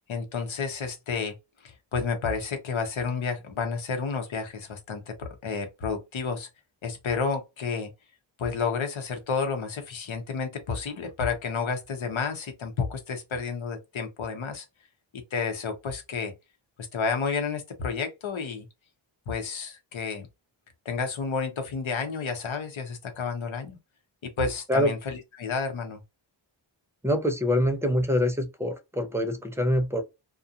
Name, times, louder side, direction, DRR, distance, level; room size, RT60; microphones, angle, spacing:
voice 1, 0.1-1.4 1.6-6.5 6.8-7.9 8.4-14.6 15.1-16.3 16.9-18.7 19.3-20.3 20.8-23.8 24.2-26.0, left 5 dB, 80° left, 0.9 m, -31 dB
voice 2, 27.0-30.0, left 1 dB, 5° right, 0.6 m, -25 dB
2.4 x 2.3 x 2.7 m
wide cardioid pair, 70°, 47 cm